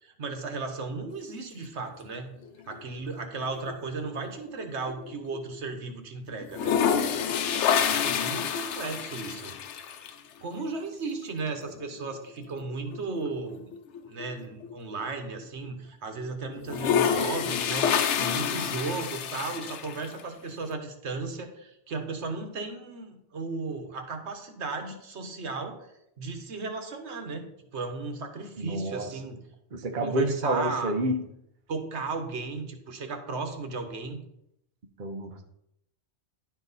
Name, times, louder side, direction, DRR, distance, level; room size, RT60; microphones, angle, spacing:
voice 1, 0.0-2.3 2.7-6.7 7.8-9.5 10.4-13.7 14.0-25.9 26.2-29.4 30.0-30.9 31.7-34.2, right 3 dB, 75° right, 6 dB, 1.3 m, -35 dB
sound 1, 2.4-3.2 3.6-5.6 5.8-5.9 6.4-10.1 11.6-11.7 12.1-12.2 12.5-14.9 15.4-15.5 16.6-20.2, left 7 dB, 85° left, 0.9 m, -28 dB
voice 2, 28.6-29.1 29.7-31.2 35.0-35.4, right 1 dB, 50° right, 4 dB, 0.9 m, -29 dB
10.5 x 4.5 x 4.0 m, 0.78 s
omnidirectional pair, 1.2 m